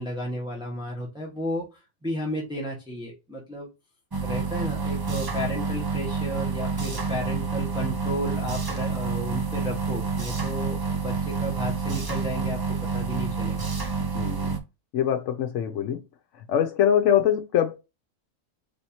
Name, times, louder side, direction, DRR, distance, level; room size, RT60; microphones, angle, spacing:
voice 1, 0.0-1.7 2.0-3.7 4.2-13.6, equal, 5° right, 1.4 m, -33 dB
sound 1, 4.1-14.6, right 5 dB, 30° right, 0.4 m, -28 dB
voice 2, 14.1-14.5 14.9-16.0 16.5-17.8, left 9 dB, 75° left, 0.9 m, -23 dB
4.4 x 3.4 x 2.8 m
omnidirectional pair, 1.3 m